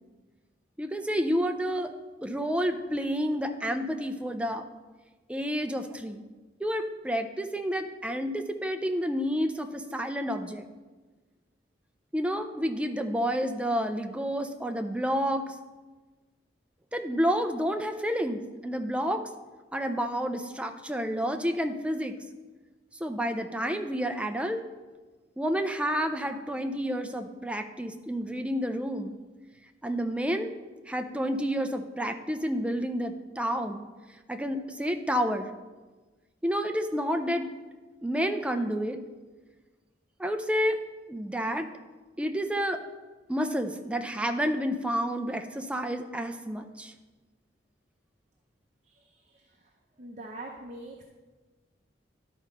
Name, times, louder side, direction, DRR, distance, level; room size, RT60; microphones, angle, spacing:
voice 1, 0.8-1.9 2.2-4.6 5.3-6.2 6.6-10.7 12.1-15.5 16.9-19.2 19.7-22.1 23.0-24.6 25.4-29.1 29.8-30.5 30.9-33.8 34.3-35.5 36.4-37.5 38.0-39.0 40.2-40.8 41.1-41.7 42.2-42.8 43.3-46.9, equal, 5° right, 6 dB, 0.4 m, -29 dB
voice 2, 48.8-51.0, right 2 dB, 40° right, 0 dB, 0.7 m, -45 dB
11.5 x 4.2 x 5.2 m, 1.3 s
head